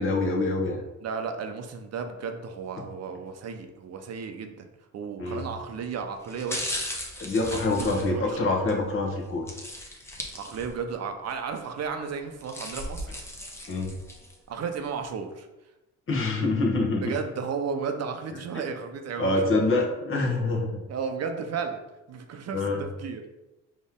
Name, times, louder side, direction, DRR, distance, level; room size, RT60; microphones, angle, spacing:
voice 1, 0.0-0.8 5.2-5.5 7.2-9.5 13.7-13.9 16.1-17.0 18.5-18.6 19.2-20.8 22.5-22.8, left 2 dB, 45° left, 0 dB, 1.1 m, -25 dB
voice 2, 1.0-4.7 4.9-6.8 7.5-8.4 10.3-13.1 14.5-15.5 17.0-19.5 20.9-21.8 22.1-23.2, right 5 dB, 55° right, 6 dB, 0.7 m, -34 dB
sound 1, 5.3-5.5 6.2-8.8 9.5-10.9 11.3-11.4 12.2-14.4 14.8-14.9, left 1 dB, 10° left, 0.8 m, -37 dB
4.3 x 3.0 x 3.6 m, 1.0 s
cardioid pair, 90°, 30 cm